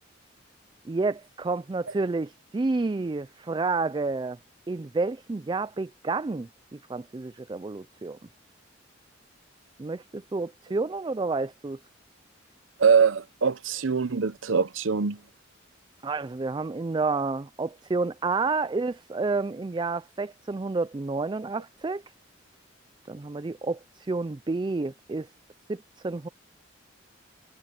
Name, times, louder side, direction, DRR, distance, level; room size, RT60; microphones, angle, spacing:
voice 1, 0.9-4.4 4.7-8.2 9.8-11.8 16.0-22.0 23.1-25.3 25.7-26.3, right 3 dB, 25° right, 0.3 m, -30 dB
voice 2, 12.8-15.2, right 6 dB, 75° right, 0.8 m, -23 dB
head